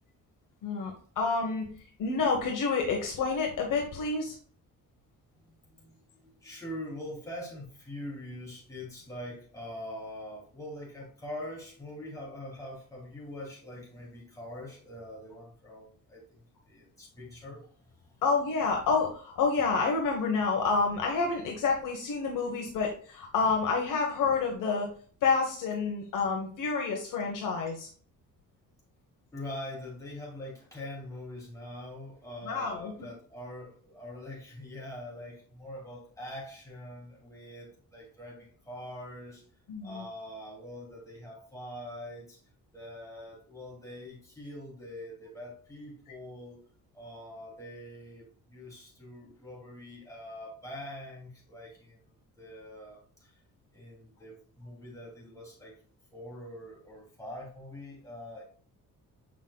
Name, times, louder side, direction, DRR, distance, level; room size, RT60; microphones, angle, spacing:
voice 1, 0.6-1.6 2.0-4.3 18.2-24.9 25.2-27.9 32.4-32.9 39.7-40.0, left 4 dB, 70° left, 1 dB, 1.3 m, -28 dB
voice 2, 5.4-5.9 6.2-18.2 29.3-39.4 39.8-42.4 42.7-46.6 46.9-52.0 52.4-53.3 53.7-55.7 56.1-58.4, left 1 dB, 10° left, -4 dB, 2.8 m, -43 dB
7.3 x 5.7 x 2.3 m, 0.43 s
cardioid pair, 160°, 33 cm